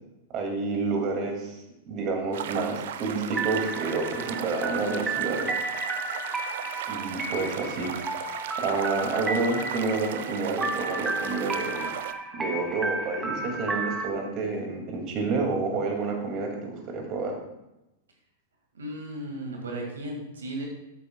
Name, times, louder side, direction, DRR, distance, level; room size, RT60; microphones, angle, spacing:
voice 1, 0.3-1.6 1.9-5.5 6.9-7.9 8.6-11.9 12.3-17.3, right 3 dB, 40° right, 2 dB, 2.1 m, -29 dB
sound 1, 2.3-12.1, right 9 dB, 65° right, 0.6 m, -37 dB
sound 2, 3.3-14.1, right 3 dB, 15° right, 1.2 m, -33 dB
voice 2, 18.7-20.6, right 1 dB, 80° right, 1 dB, 1.8 m, -35 dB
12.5 x 8.7 x 2.2 m, 0.92 s
hypercardioid pair, 105°, 0 cm